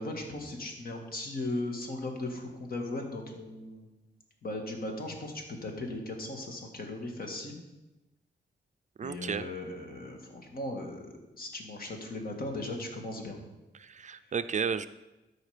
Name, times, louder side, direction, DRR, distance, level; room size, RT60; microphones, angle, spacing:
voice 1, 0.0-3.9 4.4-7.6 9.0-13.4 14.2-14.3, left 2 dB, 55° left, 3 dB, 1.8 m, -37 dB
voice 2, 9.0-9.5 13.8-14.9, right 6 dB, 45° right, 11 dB, 0.4 m, -32 dB
13.0 x 5.1 x 5.0 m, 1.0 s
cardioid pair, 95°, 18 cm